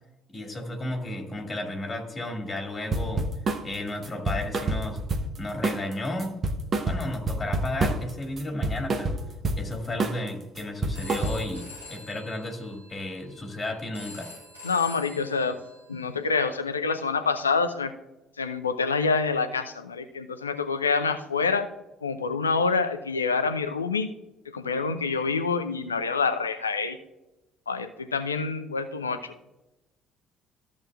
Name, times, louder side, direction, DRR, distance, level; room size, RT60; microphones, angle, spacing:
voice 1, 0.3-3.3 3.6-5.0 5.4-6.4 6.9-9.2 9.6-11.6 11.9-14.3, left 1 dB, 25° left, 3 dB, 2.3 m, -33 dB
sound 1, 2.9-3.7 4.0-5.4 5.6-5.9 6.2-8.1 8.4-9.6 10.0-10.3 10.6-11.6, right 2 dB, 40° right, 1.0 m, -27 dB
Telephone, 10.8-16.7, left 2 dB, 85° right, 1.9 m, -46 dB
voice 2, 14.6-15.6 15.9-17.9 18.4-21.7 22.0-24.1 24.5-27.0 27.7-29.3, left 4 dB, 85° left, 9 dB, 0.5 m, -27 dB
13.5 x 7.4 x 2.4 m, 0.98 s
figure-of-eight pair, 50°, 0 cm